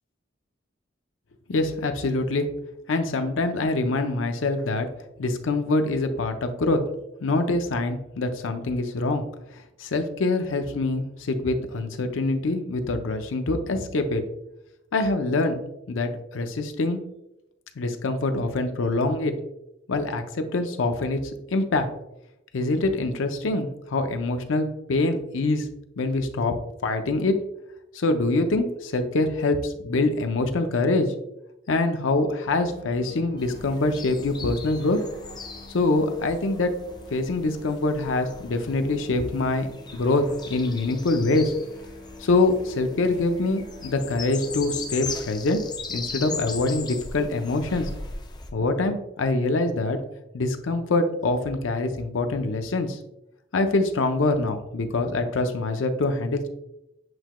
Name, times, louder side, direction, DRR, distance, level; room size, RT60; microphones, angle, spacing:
voice 1, 1.5-2.5 2.9-4.9 5.2-6.8 7.2-9.2 9.8-14.2 14.9-17.0 17.8-19.3 19.9-21.2 21.5-21.9 22.5-25.7 26.0-26.5 26.8-27.3 27.9-31.1 31.7-35.0 35.7-36.7 37.1-39.7 39.9-40.2 40.5-41.5 42.2-45.6 45.9-47.9 48.5-50.0 50.3-53.0 53.5-56.5, left 2 dB, 85° left, 7 dB, 0.6 m, -24 dB
Musical instrument, 32.4-45.1, left 1 dB, 55° right, 1.6 m, -47 dB
sound 1, 33.4-48.5, left 4 dB, 20° left, 0.4 m, -39 dB
7.7 x 3.0 x 2.2 m, 0.86 s
head